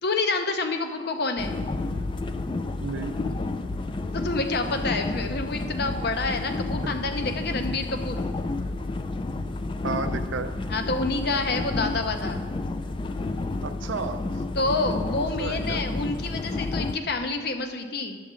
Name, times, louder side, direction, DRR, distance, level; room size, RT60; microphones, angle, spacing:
voice 1, 0.0-1.6 4.1-8.2 10.7-12.4 14.6-18.2, left 3 dB, 55° left, 6 dB, 0.7 m, -28 dB
sound 1, 1.4-17.0, left 2 dB, 25° left, 0.3 m, -30 dB
voice 2, 2.8-3.2 9.8-10.5 13.6-14.3 15.4-15.8, right 4 dB, 80° right, 9 dB, 0.5 m, -32 dB
9.9 x 7.2 x 3.7 m, 1.5 s
head